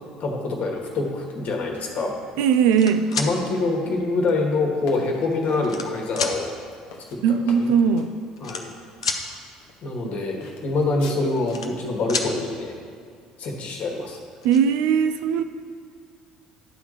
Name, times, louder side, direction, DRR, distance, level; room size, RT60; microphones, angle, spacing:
voice 1, 0.2-2.1 3.1-6.5 7.1-7.7 8.4-8.7 9.8-12.7 13.4-14.2, left 3 dB, 50° left, 0 dB, 1.5 m, -25 dB
voice 2, 2.4-3.1 7.2-8.1 14.4-15.4, right 7 dB, 65° right, 10 dB, 0.4 m, -19 dB
sound 1, 2.5-3.3 4.3-4.4 5.2-5.9 6.1-6.4 7.5-7.6 7.8-8.0 8.4-9.2 11.1-11.8 12.1-12.3 13.8-13.9 14.2-14.6, left 5 dB, 90° left, 0.5 m, -29 dB
sound 2, 4.8-8.1 8.9-9.1 9.6-10.1 10.4-11.7, left 4 dB, 65° left, 0.9 m, -43 dB
10.5 x 3.6 x 6.6 m, 2.3 s
hypercardioid pair, 60°, 3 cm